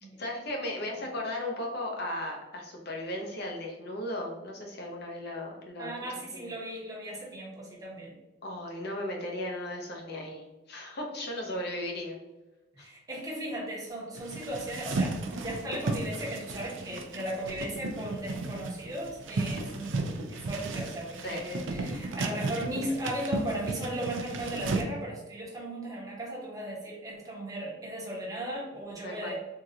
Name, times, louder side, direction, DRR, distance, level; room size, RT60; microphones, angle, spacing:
voice 1, 0.2-5.9 6.4-6.5 8.4-12.2 12.8-12.9 21.2-21.4 29.0-29.4, left 1 dB, 60° left, 0 dB, 0.8 m, -36 dB
voice 2, 5.8-8.2 12.7-15.2 15.4-29.4, right 1 dB, 20° right, -4 dB, 1.0 m, -36 dB
sound 1, 14.2-24.8, right 3 dB, 85° right, 0.4 m, -34 dB
3.7 x 2.4 x 2.8 m, 1.1 s
head